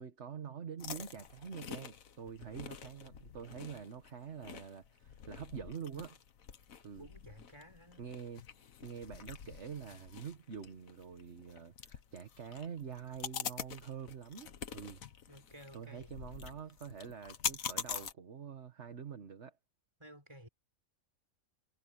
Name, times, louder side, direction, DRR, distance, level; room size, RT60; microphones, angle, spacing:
voice 1, 0.0-6.2 6.8-7.1 8.0-8.4 8.8-15.0 15.7-19.5, right 7 dB, 55° right, 1.6 m, -46 dB
sound 1, 0.8-18.1, left 7 dB, 75° left, 1.5 m, -45 dB
voice 2, 7.0-8.1 15.0-16.1 20.0-20.5, equal, 20° right, 5.8 m, -55 dB
omnidirectional pair, 1.5 m